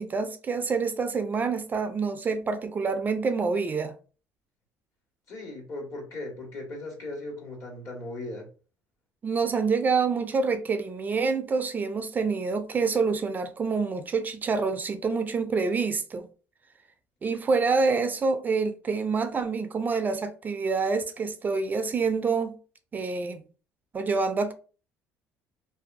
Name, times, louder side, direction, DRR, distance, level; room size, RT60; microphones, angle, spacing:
voice 1, 0.0-3.9 9.2-16.3 17.2-22.6 22.9-23.4 23.9-24.5, right 4 dB, 30° right, 0.3 m, -27 dB
voice 2, 5.3-8.5, left 2 dB, 55° left, 1.4 m, -38 dB
2.6 x 2.3 x 2.5 m
cardioid pair, 100°, 6 cm